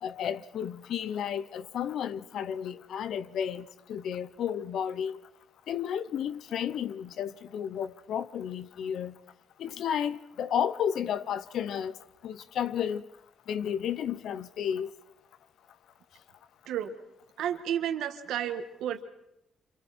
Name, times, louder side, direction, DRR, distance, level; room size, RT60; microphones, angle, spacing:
voice 1, 0.0-5.2 5.7-9.1 9.6-12.0 12.2-13.0 13.5-14.9, left 8 dB, 65° left, 0.8 m, -32 dB
voice 2, 17.4-19.0, right 10 dB, 85° right, 1.8 m, -32 dB
27.5 x 27.5 x 4.3 m
cardioid pair, 160°, 0 cm